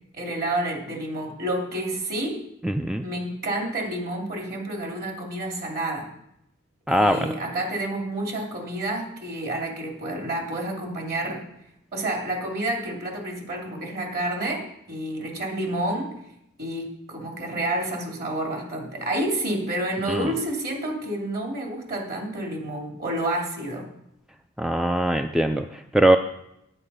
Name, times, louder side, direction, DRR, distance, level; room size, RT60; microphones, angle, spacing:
voice 1, 0.1-2.4 3.0-6.1 6.9-11.4 11.9-16.1 16.6-23.9, right 1 dB, 45° right, 1 dB, 2.7 m, -29 dB
voice 2, 2.6-3.0 6.9-7.3 20.1-20.3 24.6-26.2, right 1 dB, ahead, 7 dB, 0.3 m, -21 dB
9.9 x 8.5 x 5.5 m, 0.81 s
head